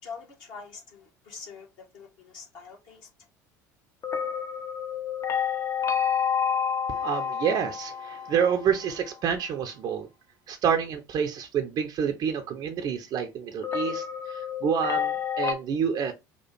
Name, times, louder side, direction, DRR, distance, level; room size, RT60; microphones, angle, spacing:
voice 1, 0.0-3.1, left 5 dB, 50° left, 1.6 m, -44 dB
sound 1, 4.0-8.9 13.6-15.5, left 7 dB, 30° left, 0.7 m, -29 dB
voice 2, 6.9-10.1 10.5-16.1, right 7 dB, 40° right, 0.6 m, -28 dB
4.2 x 2.4 x 4.3 m
figure-of-eight pair, 70°, 10 cm